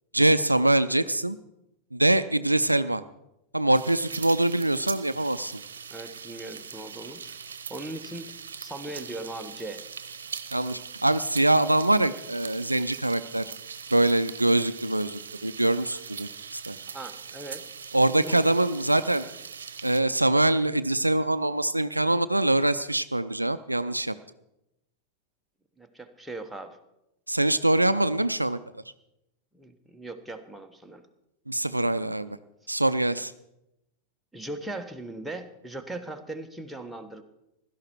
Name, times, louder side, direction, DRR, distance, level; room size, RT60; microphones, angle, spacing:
voice 1, 0.1-1.4 1.9-3.0 3.5-5.6 10.5-13.4 13.9-16.8 17.9-19.2 19.8-24.2 27.3-28.8 31.5-32.4 32.7-33.3, right 1 dB, 85° right, 14 dB, 0.5 m, -24 dB
sound 1, 3.7-20.0, right 6 dB, 65° right, 0.9 m, -41 dB
voice 2, 5.9-7.4 7.7-8.3 8.6-9.8 16.9-17.6 18.1-18.5 25.8-26.8 29.5-31.0 34.3-37.2, right 2 dB, 5° right, 4 dB, 1.3 m, -39 dB
16.5 x 12.5 x 4.6 m, 0.86 s
figure-of-eight pair, 90°, 0 cm